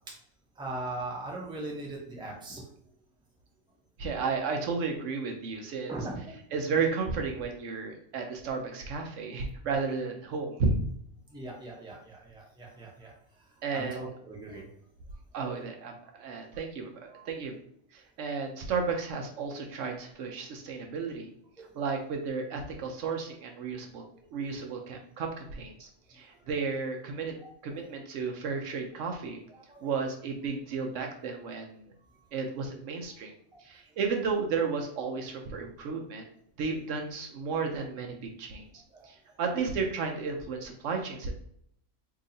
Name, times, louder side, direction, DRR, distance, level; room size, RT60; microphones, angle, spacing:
voice 1, 0.6-2.6 5.9-6.2 9.6-9.8 11.3-13.1 13.7-14.6 17.1-17.2 21.6-21.7 24.1-24.3 27.4-27.5 29.5-29.9 38.9-39.4, right 2 dB, 5° right, -3 dB, 0.7 m, -40 dB
voice 2, 4.0-6.0 6.5-10.8 13.6-14.1 15.3-17.6 17.9-21.3 21.7-24.0 24.3-27.4 27.6-29.4 29.8-31.9 32.3-33.3 33.6-36.3 36.6-38.7 39.0-41.3, right 4 dB, 75° right, 3 dB, 1.0 m, -33 dB
2.8 x 2.8 x 3.9 m, 0.67 s
omnidirectional pair, 1.3 m